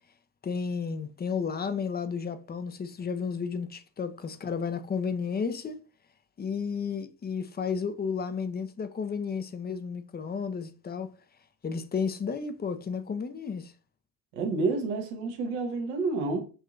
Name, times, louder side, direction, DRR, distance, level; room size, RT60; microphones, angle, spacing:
voice 1, 0.4-5.8 6.4-11.1 11.6-13.7, left 6 dB, 20° left, 0.5 m, -32 dB
voice 2, 14.3-16.5, right 3 dB, 75° right, 1.0 m, -29 dB
5.5 x 2.7 x 2.4 m
hypercardioid pair, 50°, 44 cm